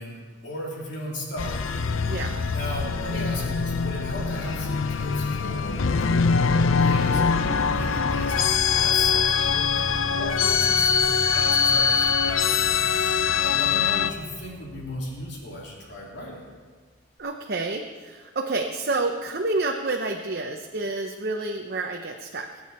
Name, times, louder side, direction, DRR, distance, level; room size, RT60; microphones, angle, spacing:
voice 1, 0.0-1.5 2.5-16.4, left 1 dB, 60° left, -3 dB, 3.3 m, -37 dB
sound 1, 1.4-14.1, left 5 dB, 85° left, 0.7 m, -23 dB
voice 2, 2.0-2.4 17.2-22.5, right 2 dB, 50° right, 3 dB, 0.8 m, -29 dB
sound 2, 7.3-16.4, left 1 dB, 5° right, 1.7 m, -37 dB
23.5 x 8.8 x 4.3 m, 1.5 s
head